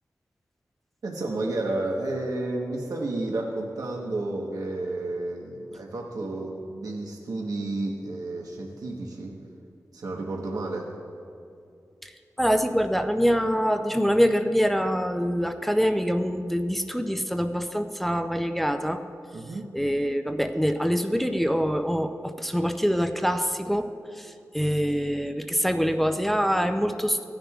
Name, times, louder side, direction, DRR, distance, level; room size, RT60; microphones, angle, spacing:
voice 1, 1.0-9.3 9.9-10.9 19.3-19.7, right 2 dB, 90° right, -1 dB, 1.1 m, -31 dB
voice 2, 12.4-19.0 19.7-27.2, equal, 5° left, 6 dB, 0.5 m, -25 dB
16.5 x 10.5 x 2.4 m, 2.6 s
wide cardioid pair, 110°, 6 cm